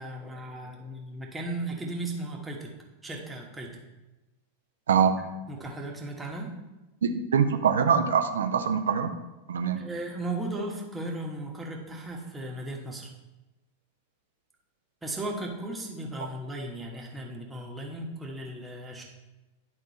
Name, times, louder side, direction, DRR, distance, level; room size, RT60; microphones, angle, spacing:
voice 1, 0.0-2.7 3.0-3.8 5.5-6.5 9.8-13.1 15.0-19.0, right 2 dB, 10° right, -1 dB, 1.4 m, -36 dB
voice 2, 4.9-5.2 7.0-9.2 9.5-9.8, right 7 dB, 65° right, 7 dB, 0.6 m, -24 dB
10.5 x 3.7 x 4.1 m, 1.1 s
figure-of-eight pair, 90°, 0 cm